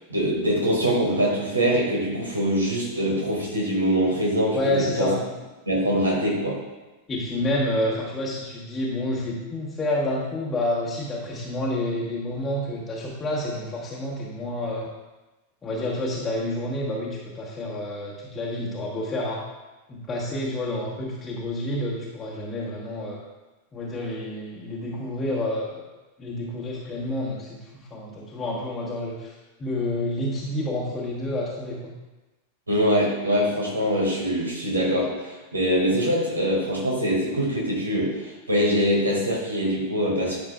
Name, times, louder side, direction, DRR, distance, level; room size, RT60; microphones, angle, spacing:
voice 1, 0.0-5.1 5.7-6.6 32.7-40.4, equal, 80° right, -3 dB, 2.1 m, -23 dB
voice 2, 4.5-5.2 7.1-14.9 15.6-19.4 19.9-23.2 23.7-25.8 26.2-31.9, left 1 dB, 20° left, -5 dB, 1.2 m, -29 dB
11.0 x 5.8 x 2.3 m, 1.1 s
figure-of-eight pair, 90°, 0 cm